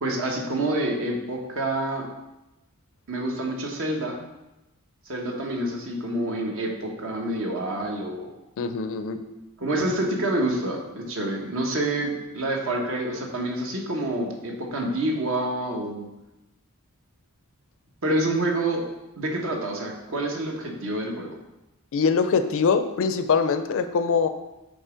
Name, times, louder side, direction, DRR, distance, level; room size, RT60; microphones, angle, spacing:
voice 1, 0.0-2.1 3.1-4.2 5.1-8.3 9.6-16.1 18.0-18.8 19.2-21.4, right 1 dB, 65° right, 1 dB, 1.0 m, -27 dB
voice 2, 8.6-9.2 21.9-24.3, left 5 dB, 65° left, 9 dB, 0.4 m, -23 dB
5.3 x 3.9 x 5.0 m, 0.99 s
head